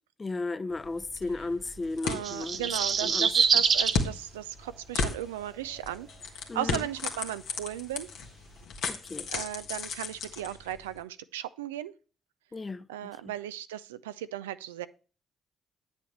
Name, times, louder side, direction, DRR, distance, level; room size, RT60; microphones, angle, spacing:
voice 1, 0.2-2.7 3.0-3.3 6.5-6.9 8.9-9.3 12.5-13.3, left 3 dB, 30° left, 0.7 m, -35 dB
sound 1, 0.7-11.0, left 5 dB, 70° left, 1.3 m, -36 dB
voice 2, 2.0-6.1 6.5-8.1 9.3-11.9 12.9-14.9, right 12 dB, 85° right, 0.3 m, -36 dB
sound 2, 2.1-4.0 5.4-5.5, right 6 dB, 55° right, 0.7 m, -25 dB
9.1 x 7.2 x 3.2 m
hypercardioid pair, 40°, 0 cm